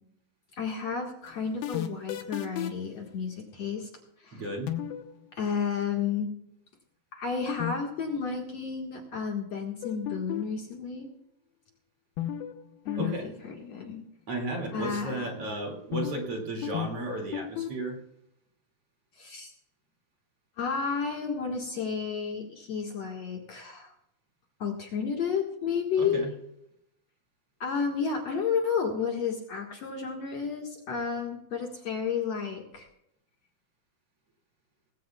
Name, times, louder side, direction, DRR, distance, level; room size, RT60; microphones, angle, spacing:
voice 1, 0.5-3.9 4.2-4.4 5.3-6.3 7.1-11.1 12.9-13.2 13.5-14.0 14.7-15.3 19.2-19.5 20.6-23.9 24.6-26.2 27.6-32.9, left 6 dB, 55° left, 1 dB, 2.4 m, -31 dB
sound 1, 1.3-2.9 4.7-5.1 7.5-7.7 8.0-8.1 9.8-10.6 12.2-12.6 12.9-13.1 13.4-13.5 15.9-16.3 16.6-17.7, left 12 dB, 85° left, 3.0 m, -33 dB
voice 2, 4.3-4.7 12.9-13.4 14.3-18.0 26.0-26.3, right 2 dB, 45° right, 1 dB, 3.0 m, -34 dB
20.0 x 16.5 x 2.3 m, 0.79 s
omnidirectional pair, 4.3 m